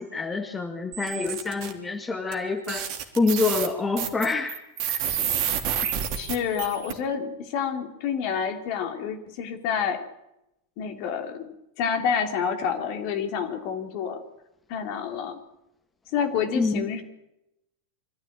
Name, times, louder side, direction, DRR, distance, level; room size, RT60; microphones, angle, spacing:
voice 1, 0.0-2.9 3.2-4.6 5.8-5.9 16.6-16.9, left 4 dB, 15° left, 6 dB, 1.9 m, -26 dB
sound 1, 0.9-1.7 2.3-2.4 2.7-6.9, right 9 dB, 40° right, 3.0 m, -29 dB
voice 2, 6.2-10.0 10.8-11.5 11.8-14.2 14.7-15.4 16.1-17.0, left 7 dB, 45° left, 6 dB, 3.3 m, -28 dB
24.5 x 14.0 x 8.9 m, 0.86 s
figure-of-eight pair, 90°, 0 cm